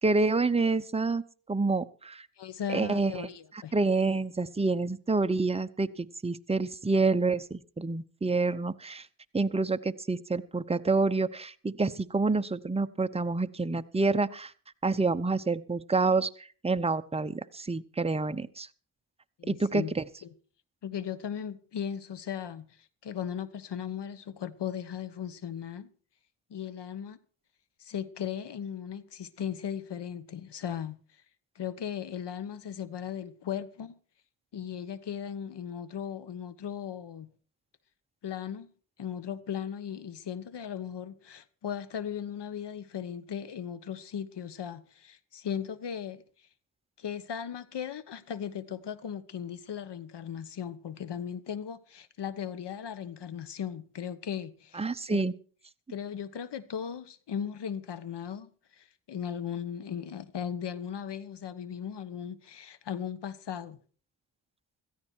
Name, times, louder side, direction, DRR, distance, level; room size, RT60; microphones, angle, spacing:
voice 1, 0.0-1.2 1.5-2.3 2.7-3.3 3.7-9.1 9.3-14.5 14.8-18.7 19.5-20.0 54.7-55.3, right 3 dB, 10° right, 0.8 m, -28 dB
voice 2, 2.4-3.7 19.4-19.9 20.2-20.3 20.8-22.8 23.0-25.9 26.5-27.2 27.8-31.0 31.5-33.9 34.5-37.3 38.2-38.7 39.0-46.2 47.0-55.3 55.9-58.5 58.8-63.8, left 8 dB, 55° left, 1.3 m, -37 dB
16.5 x 14.0 x 4.5 m
cardioid pair, 75°, 48 cm